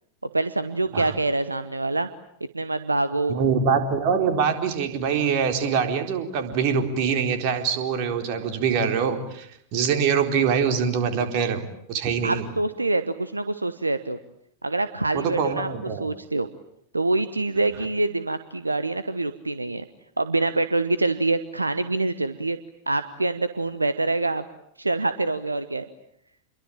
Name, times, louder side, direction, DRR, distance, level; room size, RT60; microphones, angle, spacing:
voice 1, 0.3-2.1 2.5-3.4 12.2-14.2 14.6-15.7 16.0-16.5 16.9-19.8 20.2-22.6 22.9-24.4 24.8-25.8, right 2 dB, 80° right, 13 dB, 1.1 m, -25 dB
voice 2, 3.3-11.6 11.9-12.5 15.1-16.1, right 6 dB, 45° right, 6 dB, 4.2 m, -24 dB
28.5 x 23.0 x 8.9 m, 0.72 s
figure-of-eight pair, 90°, 0 cm